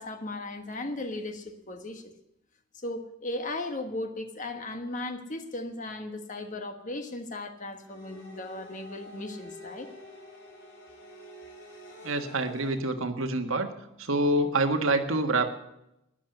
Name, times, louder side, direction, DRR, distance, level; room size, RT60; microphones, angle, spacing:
voice 1, 0.0-2.1 2.7-9.9, left 2 dB, 35° left, 6 dB, 1.3 m, -36 dB
sound 1, 7.8-12.8, left 1 dB, 55° left, 6.0 m, -47 dB
voice 2, 12.0-13.7 14.0-15.5, right 2 dB, 70° right, 6 dB, 1.5 m, -26 dB
12.5 x 10.5 x 7.9 m, 0.85 s
head